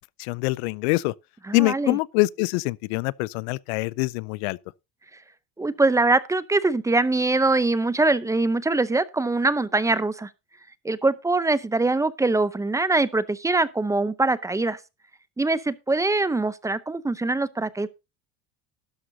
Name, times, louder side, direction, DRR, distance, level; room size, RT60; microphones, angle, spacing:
voice 1, 0.2-1.1 1.5-4.6, left 23 dB, 90° left, 0.5 m, -24 dB
voice 2, 1.5-2.0 5.6-10.3 10.8-14.8 15.4-17.9, right 2 dB, 10° right, 0.6 m, -23 dB
12.5 x 11.5 x 2.7 m
cardioid pair, 120°, 31 cm